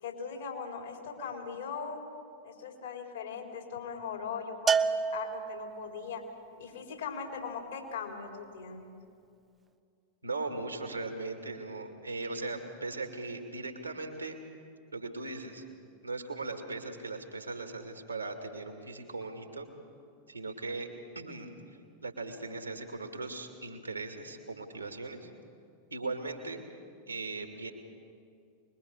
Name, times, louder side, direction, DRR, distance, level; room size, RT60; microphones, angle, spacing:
voice 1, 0.0-2.0 2.4-6.2 6.6-8.9, left 6 dB, 65° left, 1 dB, 4.0 m, -39 dB
Bell, 4.7-6.0, right 5 dB, 20° right, 0.8 m, -29 dB
voice 2, 10.2-14.4 14.9-15.6 16.0-19.7 20.3-20.9 21.1-21.5 22.0-25.3 25.9-26.6 27.1-27.7, right 3 dB, 80° right, 4 dB, 2.6 m, -38 dB
24.5 x 21.5 x 6.7 m, 2.5 s
figure-of-eight pair, 90°, 0 cm